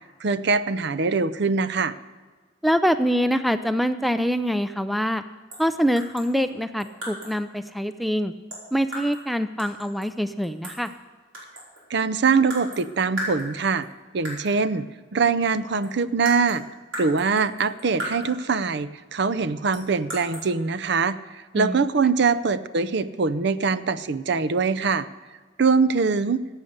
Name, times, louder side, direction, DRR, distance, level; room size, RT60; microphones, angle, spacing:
voice 1, 0.2-2.0 11.9-13.9 14.1-14.9 15.1-16.6 17.0-25.1 25.6-26.4, right 4 dB, 60° right, 15 dB, 0.5 m, -23 dB
voice 2, 2.6-5.2 5.6-8.3 8.7-10.9 21.5-21.8, equal, ahead, 11 dB, 0.4 m, -24 dB
sound 1, 5.5-5.7 6.0-7.4 8.5-9.3 9.6-11.0 11.3-11.9 12.5-12.9 13.2-13.9 14.2-14.6 15.5-15.6 15.8-18.5 19.7-20.5, right 1 dB, 90° right, 4.7 m, -36 dB
15.5 x 8.3 x 6.6 m, 1.4 s
head